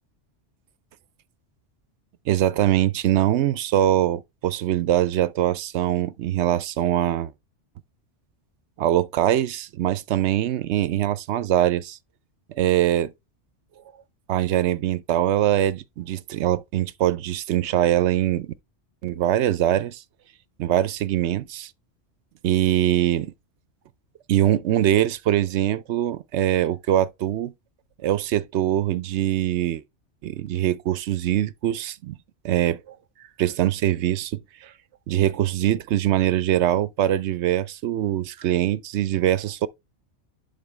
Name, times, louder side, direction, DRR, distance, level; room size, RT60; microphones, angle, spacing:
voice 1, 2.3-7.3 8.8-12.0 12.6-13.1 14.3-18.5 19.0-20.0 20.6-21.7 22.4-23.3 24.3-27.5 28.0-29.8 30.2-32.2 32.4-33.0 33.4-34.7 35.1-39.7, right 12 dB, 75° right, 0.8 m, -23 dB
11.0 x 4.0 x 3.2 m
omnidirectional pair, 1.2 m